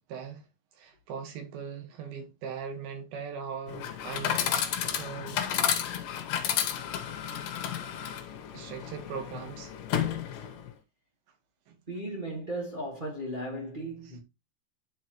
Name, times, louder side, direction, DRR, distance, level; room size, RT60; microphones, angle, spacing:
voice 1, 0.1-0.5 0.7-4.4 5.0-5.4 8.5-9.7 11.7-11.8, right 6 dB, 80° right, 3.3 m, -39 dB
Chatter / Coin (dropping), 3.7-10.7, left 9 dB, 70° left, 2.4 m, -32 dB
voice 2, 11.9-14.2, right 1 dB, 40° right, 0.6 m, -36 dB
10.0 x 4.7 x 3.0 m
omnidirectional pair, 4.2 m